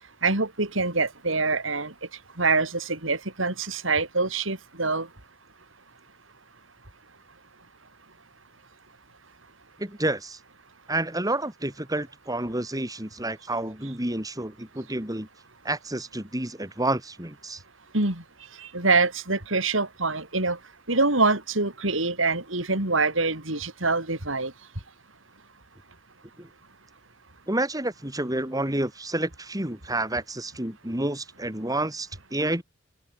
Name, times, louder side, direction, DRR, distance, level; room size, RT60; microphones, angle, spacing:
voice 1, 0.2-1.9 2.4-5.1 17.9-18.2 18.6-20.6 20.9-24.5, right 3 dB, 75° right, 5.4 m, -25 dB
voice 2, 9.8-10.4 10.9-15.3 15.6-17.6 26.4-26.5 27.5-32.6, right 1 dB, 20° right, 4.3 m, -29 dB
open air
head